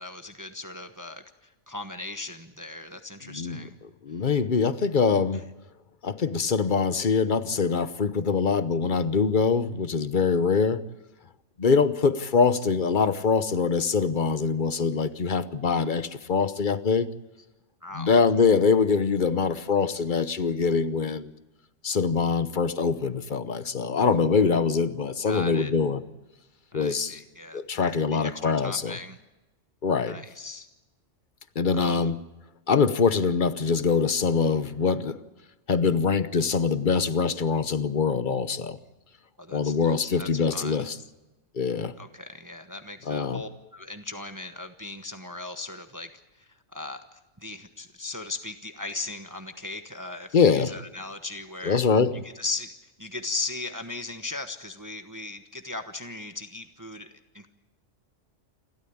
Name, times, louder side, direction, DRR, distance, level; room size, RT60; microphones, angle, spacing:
voice 1, 0.0-3.7 4.1-4.3 5.3-5.4 17.8-18.2 25.3-25.7 26.7-29.2 30.1-30.7 31.7-32.1 39.4-40.8 42.0-51.8 52.1-57.1 57.3-57.5, left 3 dB, 15° right, 1.1 m, -38 dB
voice 2, 3.3-3.6 4.0-5.4 6.0-10.8 11.6-17.1 17.9-21.3 21.8-26.0 26.7-27.1 27.5-29.0 29.8-30.2 31.5-32.2 32.7-35.2 35.7-38.8 39.5-41.0 41.5-41.9 43.1-43.4 50.3-50.7 51.6-52.1, left 5 dB, 45° left, 1.0 m, -24 dB
28.5 x 13.0 x 8.7 m
omnidirectional pair, 1.3 m